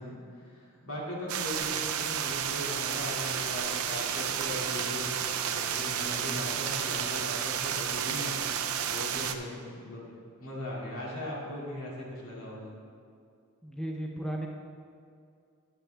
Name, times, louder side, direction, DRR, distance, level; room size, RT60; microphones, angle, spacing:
voice 1, 0.0-10.1 10.4-12.7, left 1 dB, 80° left, -5 dB, 2.3 m, -39 dB
sound 1, 1.3-9.3, right 8 dB, 80° right, 0.5 m, -31 dB
sound 2, 2.6-6.0 6.3-6.8 7.2-7.7 7.9-9.2 9.5-9.7 10.1-10.6, left 3 dB, 40° left, 0.7 m, -52 dB
voice 2, 13.6-14.5, right 1 dB, 5° left, 0 dB, 0.6 m, -35 dB
9.6 x 8.7 x 3.4 m, 2.3 s
head